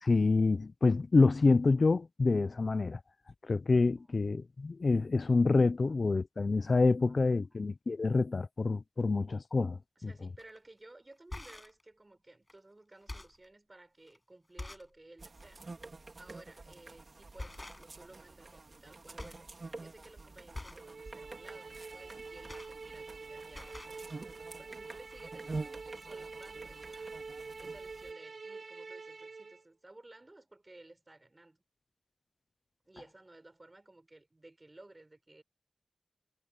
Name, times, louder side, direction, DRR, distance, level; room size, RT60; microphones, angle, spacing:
voice 1, 0.0-3.0 3.4-10.1, left 3 dB, 60° left, 0.5 m, -27 dB
voice 2, 10.0-19.5 19.8-27.2 27.6-31.6 32.9-35.4, right 2 dB, 30° right, 5.9 m, -56 dB
sound 1, 10.4-10.6 11.1-11.8 12.5-12.6 12.9-13.5 14.1-14.2 14.6-15.0 15.4-15.5 16.7-16.9 17.4-18.1 18.4-18.9 19.2-19.5 19.8-20.1 20.5-20.9 22.1-23.2 23.5-24.0 24.8-24.9 25.1-25.2, left 2 dB, 25° left, 6.4 m, -46 dB
sound 2, 15.2-28.1, right 3 dB, 50° right, 2.5 m, -47 dB
sound 3, 20.8-29.6, right 4 dB, 75° right, 2.1 m, -46 dB
wide cardioid pair, 90°, 0 cm